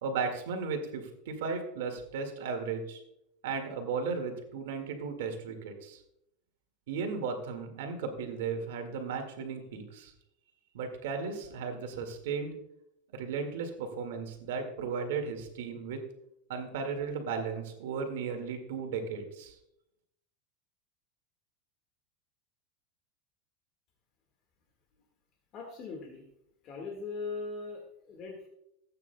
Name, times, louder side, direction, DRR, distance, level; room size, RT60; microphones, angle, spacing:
voice 1, 0.0-3.0 3.4-6.0 6.9-10.1 10.7-12.6 13.1-16.0 16.5-19.6, right 5 dB, 80° right, 4 dB, 1.9 m, -35 dB
voice 2, 25.5-26.2 26.6-28.5, left 4 dB, 40° left, 1 dB, 1.7 m, -40 dB
17.0 x 8.9 x 2.2 m, 0.81 s
supercardioid pair, 145°, 0 cm